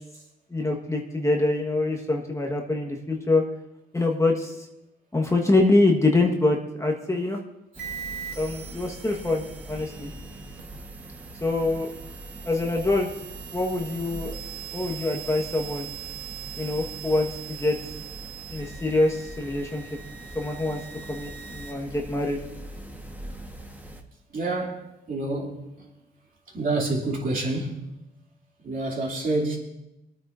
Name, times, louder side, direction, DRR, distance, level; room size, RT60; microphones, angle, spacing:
voice 1, 0.5-3.4 3.9-4.5 5.1-7.4 8.4-10.1 11.4-11.9 12.4-13.1 13.5-14.4 14.7-15.9 16.6-17.8 18.5-19.9 20.3-20.8 21.1-22.4, left 2 dB, 15° left, 1.4 m, -24 dB
sound 1, 7.7-24.0, right 1 dB, 10° right, 1.4 m, -42 dB
sound 2, 7.7-21.7, right 9 dB, 80° right, 1.7 m, -41 dB
voice 2, 24.3-24.8 25.1-25.8 26.5-27.9 28.6-29.6, right 2 dB, 45° right, 2.8 m, -28 dB
24.0 x 9.2 x 2.6 m
cardioid pair, 90°, 20 cm